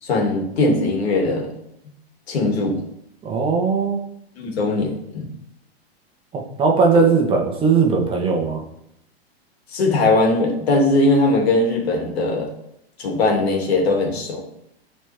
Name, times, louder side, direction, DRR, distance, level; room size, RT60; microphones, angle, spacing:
voice 1, 0.0-1.5 2.3-2.8 4.3-5.3 6.9-7.0 9.7-12.5 13.0-14.4, left 2 dB, 75° left, 0 dB, 2.6 m, -20 dB
voice 2, 3.2-4.0 6.3-8.6, right 4 dB, 15° right, 0 dB, 1.1 m, -18 dB
11.0 x 4.3 x 3.5 m, 0.76 s
hypercardioid pair, 145°, 32 cm